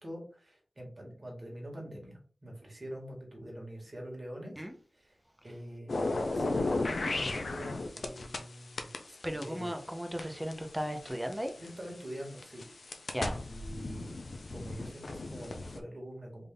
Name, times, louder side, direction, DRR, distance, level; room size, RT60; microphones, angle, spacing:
voice 1, 0.0-4.6 4.9-9.2 9.4-9.7 11.6-12.7 13.2-14.2 14.5-16.5, equal, 40° right, 1.7 m, -45 dB
sound 1, 5.9-8.4 8.8-11.7 12.3-15.8, left 2 dB, 80° left, 0.5 m, -35 dB
voice 2, 9.2-11.5 13.1-13.4, equal, 10° right, 0.7 m, -36 dB
3.5 x 2.7 x 3.7 m
wide cardioid pair, 75°, 0 cm